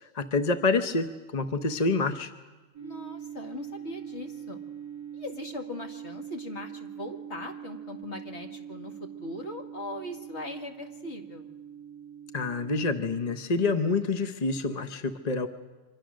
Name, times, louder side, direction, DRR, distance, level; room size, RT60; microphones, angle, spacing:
voice 1, 0.1-2.3 12.3-15.5, left 3 dB, 35° left, 8 dB, 0.9 m, -27 dB
sound 1, 2.7-13.4, right 9 dB, 25° right, 2.2 m, -43 dB
voice 2, 2.8-4.6 5.1-11.5, left 2 dB, 55° left, 3 dB, 2.3 m, -40 dB
27.0 x 25.0 x 6.4 m, 1.2 s
omnidirectional pair, 1.4 m